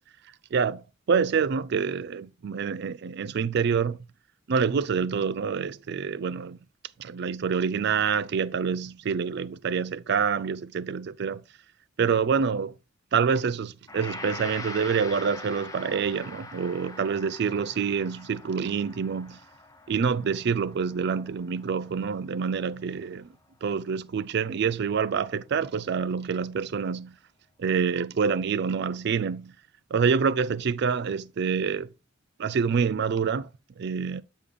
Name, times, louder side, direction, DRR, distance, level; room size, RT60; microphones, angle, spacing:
voice 1, 0.5-4.0 4.5-6.6 7.0-11.4 12.0-12.7 13.1-19.4 19.9-23.3 23.6-27.1 27.6-29.5 29.9-31.9 32.4-33.5 33.8-34.2, right 6 dB, 60° right, 0.4 m, -27 dB
Gong, 13.9-23.1, left 2 dB, 20° left, 0.8 m, -43 dB
8.4 x 5.1 x 3.6 m
head